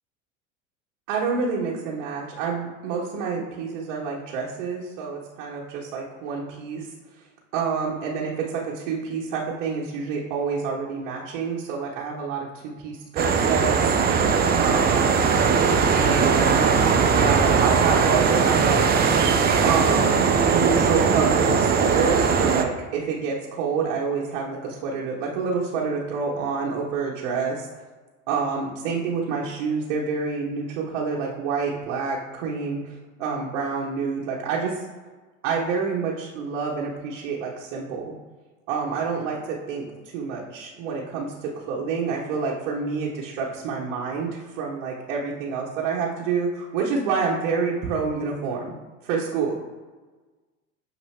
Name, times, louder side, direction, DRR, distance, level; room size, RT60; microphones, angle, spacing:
voice 1, 1.1-6.9 7.5-14.0 14.6-15.2 15.9-18.9 19.6-20.2 20.5-27.7 28.3-34.9 35.4-38.1 38.7-48.7 49.0-49.5, right 5 dB, 60° right, -4 dB, 0.9 m, -28 dB
sound 1, 13.2-22.6, right 5 dB, 25° right, 0.5 m, -20 dB
6.4 x 2.6 x 3.1 m, 1.3 s
hypercardioid pair, 85°, 38 cm